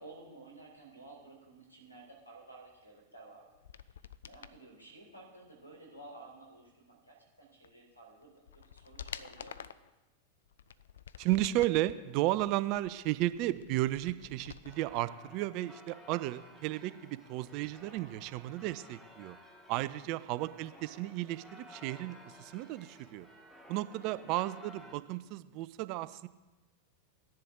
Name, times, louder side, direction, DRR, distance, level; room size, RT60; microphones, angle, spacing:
voice 1, 0.0-3.5 3.9-4.0 4.3-9.7 23.9-24.2, right 2 dB, 85° left, 1 dB, 3.7 m, -53 dB
sound 1, 3.5-4.6 7.6-7.7 8.2-9.9 10.5-11.9 12.3-15.0 15.3-15.4, left 8 dB, 65° left, 0.4 m, -49 dB
voice 2, 11.2-19.4 19.7-23.3 23.7-26.3, right 16 dB, 45° right, 15 dB, 0.5 m, -34 dB
sound 2, 14.6-25.0, equal, 5° left, 1.8 m, -55 dB
15.5 x 10.5 x 3.7 m, 1.1 s
figure-of-eight pair, 90°, 0 cm